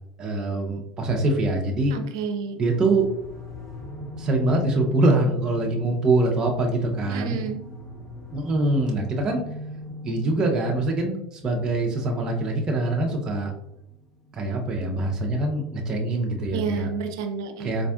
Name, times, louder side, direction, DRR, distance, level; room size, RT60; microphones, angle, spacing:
voice 1, 0.2-1.9 2.6-3.1 4.2-7.4 8.3-9.4 10.0-13.5 14.3-16.9 17.6-17.9, right 2 dB, 35° right, 1 dB, 0.6 m, -24 dB
voice 2, 1.9-2.6 7.1-7.6 16.5-17.8, right 6 dB, 90° right, 6 dB, 0.5 m, -30 dB
sound 1, 2.6-15.4, equal, 25° left, 1.1 m, -40 dB
4.2 x 2.4 x 2.2 m, 0.81 s
supercardioid pair, 105°, 2 cm